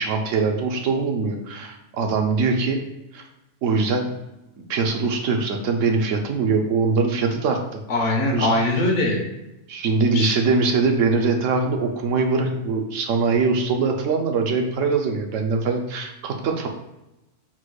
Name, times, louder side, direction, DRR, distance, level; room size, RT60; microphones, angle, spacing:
voice 1, 0.0-2.8 3.1-3.2 3.6-4.1 4.7-7.8 8.3-8.5 9.7-16.7, right 4 dB, 75° right, 3 dB, 1.0 m, -22 dB
voice 2, 7.9-9.2 10.1-10.3, left 2 dB, 70° left, 1 dB, 1.1 m, -21 dB
4.3 x 2.2 x 4.5 m, 0.94 s
omnidirectional pair, 1.3 m